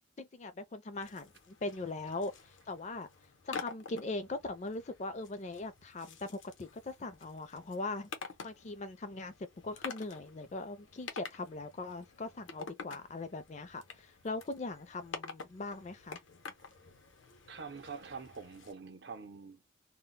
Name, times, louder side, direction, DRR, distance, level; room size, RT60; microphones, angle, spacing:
voice 1, 0.2-3.1 3.4-8.1 8.4-9.3 9.6-16.2, left 2 dB, 35° left, 0.4 m, -40 dB
sound 1, 0.9-18.7, left 5 dB, 85° left, 0.7 m, -49 dB
voice 2, 17.5-19.6, right 5 dB, 60° right, 0.6 m, -45 dB
2.2 x 2.1 x 3.8 m
head